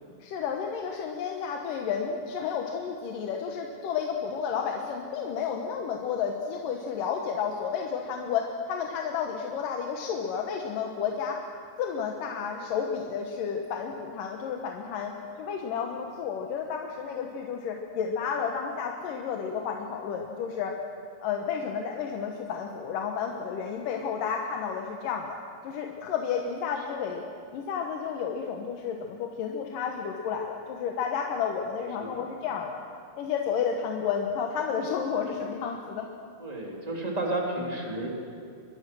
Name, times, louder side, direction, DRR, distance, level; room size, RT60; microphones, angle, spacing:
voice 1, 0.2-11.4 11.8-15.1 15.4-20.7 21.2-25.4 25.6-27.3 27.5-32.8 33.2-36.1, left 7 dB, 75° left, 2 dB, 2.8 m, -31 dB
voice 2, 36.4-38.1, right 1 dB, 10° right, -1 dB, 3.1 m, -32 dB
24.0 x 22.0 x 6.3 m, 2.3 s
omnidirectional pair, 4.0 m